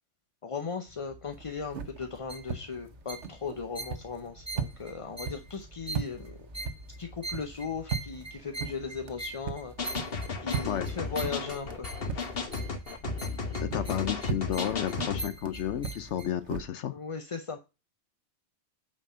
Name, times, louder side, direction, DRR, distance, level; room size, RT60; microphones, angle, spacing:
voice 1, 0.4-6.4 7.0-12.4 16.9-17.6, left 5 dB, 35° left, 0.7 m, -38 dB
sound 1, 0.9-16.3, right 1 dB, 20° right, 3.1 m, -44 dB
sound 2, 1.3-12.8 13.1-16.6, right 6 dB, 70° right, 1.2 m, -39 dB
sound 3, 9.8-15.3, left 4 dB, 55° left, 1.5 m, -34 dB
voice 2, 13.6-17.0, left 10 dB, 75° left, 0.9 m, -32 dB
9.1 x 4.4 x 5.4 m
omnidirectional pair, 1.2 m